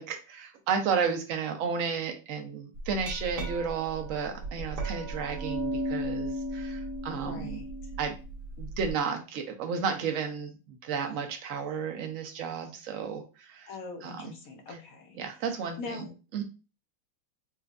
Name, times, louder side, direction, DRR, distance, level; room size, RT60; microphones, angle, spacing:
voice 1, 0.0-7.6 8.0-8.2 8.6-13.7 14.0-14.3 14.7-14.8 15.2-16.1 16.3-16.4, right 6 dB, 80° right, 4 dB, 0.7 m, -33 dB
Glass, 2.8-8.9, right 1 dB, 65° right, 1.4 m, -35 dB
voice 2, 7.2-7.7 13.7-15.2 15.8-16.1, left 3 dB, 70° left, 2 dB, 0.8 m, -42 dB
4.3 x 2.4 x 2.3 m, 0.31 s
omnidirectional pair, 2.0 m